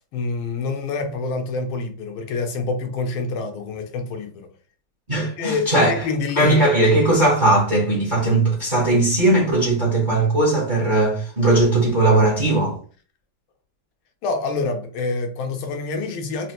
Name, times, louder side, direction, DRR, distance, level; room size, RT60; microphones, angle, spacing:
voice 1, 0.1-4.5 5.4-6.6 14.2-16.5, left 3 dB, 75° left, 1.5 m, -26 dB
voice 2, 5.1-6.0 6.4-12.8, right 2 dB, 30° right, 0.9 m, -18 dB
4.3 x 2.8 x 2.9 m
omnidirectional pair, 2.4 m